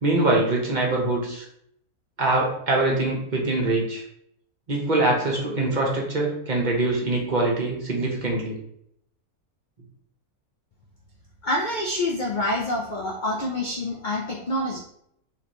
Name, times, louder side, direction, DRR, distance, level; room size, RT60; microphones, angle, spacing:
voice 1, 0.0-1.4 2.2-4.0 4.7-8.6, right 2 dB, 35° right, -2 dB, 0.9 m, -23 dB
voice 2, 11.4-14.8, left 1 dB, 80° left, -1 dB, 0.4 m, -27 dB
3.0 x 3.0 x 4.2 m, 0.72 s
omnidirectional pair, 1.6 m